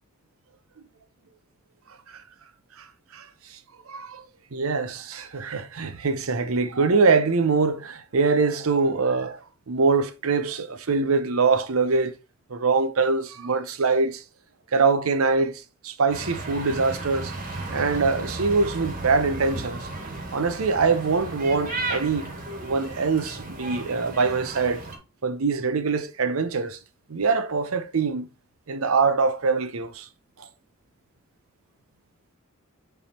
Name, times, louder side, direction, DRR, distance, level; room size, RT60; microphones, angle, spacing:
voice 1, 3.1-3.6 3.9-4.2 4.5-12.1 12.5-14.2 14.7-17.3 17.7-19.9 20.3-22.3 22.6-24.8 25.2-26.8 27.1-28.3 28.7-30.1 30.4-30.5, right 4 dB, 90° right, 0.7 m, -24 dB
sound 1, 16.1-25.0, right 2 dB, 40° right, 1.7 m, -34 dB
7.3 x 3.5 x 4.3 m
head